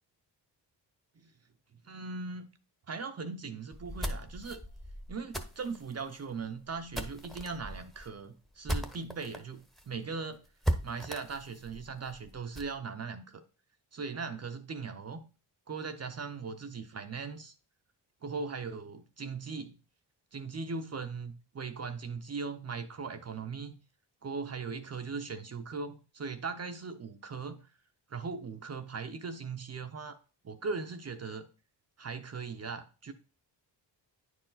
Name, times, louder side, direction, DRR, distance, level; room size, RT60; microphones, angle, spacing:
voice 1, 1.9-2.5 2.9-4.6 5.1-10.4 10.8-13.4 13.9-15.2 15.7-17.5 18.2-19.8 20.3-23.7 24.2-27.6 28.1-30.2 30.4-31.5 32.0-33.1, right 4 dB, 35° right, 7 dB, 0.6 m, -39 dB
sound 1, 3.7-9.4 9.8-9.9 10.1-10.2 10.6-12.8, right 1 dB, ahead, 0.9 m, -37 dB
9.5 x 4.6 x 3.9 m, 0.35 s
cardioid pair, 120°, 44 cm